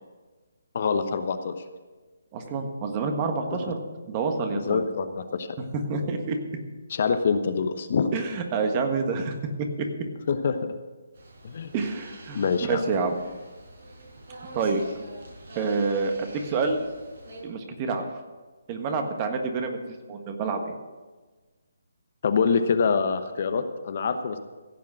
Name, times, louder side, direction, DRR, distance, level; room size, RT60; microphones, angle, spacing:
voice 1, 0.7-1.5 4.5-5.5 6.9-8.2 10.3-10.7 11.4-11.7 12.3-12.8 22.2-24.4, left 5 dB, 50° left, 8 dB, 1.0 m, -25 dB
voice 2, 2.3-3.8 4.1-4.8 5.7-6.4 8.1-9.9 11.7-13.1 14.5-14.8 15.5-16.9 17.4-18.2 18.7-19.8 20.1-20.7, right 4 dB, 30° right, 5 dB, 1.5 m, -28 dB
sound 1, 11.1-17.4, right 2 dB, 65° right, 5.2 m, -45 dB
16.0 x 7.3 x 6.2 m, 1.3 s
figure-of-eight pair, 150°, 0 cm